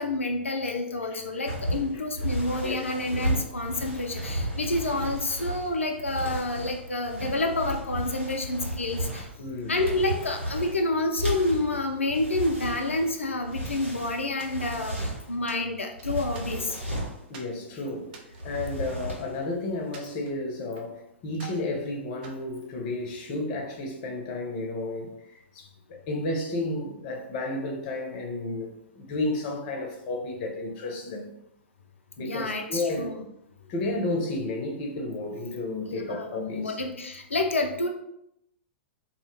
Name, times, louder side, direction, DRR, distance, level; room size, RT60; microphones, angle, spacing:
voice 1, 0.0-9.3 9.7-16.8 32.2-33.1 35.9-37.9, left 2 dB, 80° left, 3 dB, 0.4 m, -29 dB
voice 2, 1.1-1.5 2.6-2.8 9.4-9.8 17.3-31.3 32.2-33.2 33.7-36.8, left 2 dB, 40° left, 1 dB, 0.6 m, -32 dB
sound 1, 1.4-15.4 16.0-17.2 18.3-19.4 19.7-20.0, right 1 dB, 85° right, 1.2 m, -34 dB
sound 2, 14.4-15.0 15.5-16.9 17.3-17.6 18.0-19.4 19.9-20.9 21.3-21.7 22.2-23.3, right 3 dB, 45° right, 0.5 m, -49 dB
2.3 x 2.1 x 3.1 m, 0.80 s
figure-of-eight pair, 105°, 7 cm